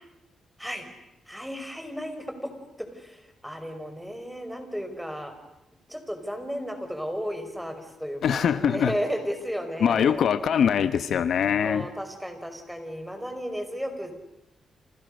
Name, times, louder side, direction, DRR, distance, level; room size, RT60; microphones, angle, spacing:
voice 1, 1.3-2.5 2.8-5.3 5.9-10.2 11.6-14.1, equal, ahead, 7 dB, 5.3 m, -34 dB
voice 2, 8.2-8.9 9.8-11.9, left 8 dB, 70° left, 12 dB, 1.1 m, -23 dB
29.0 x 28.0 x 6.6 m, 0.86 s
cardioid pair, 95°, 0 cm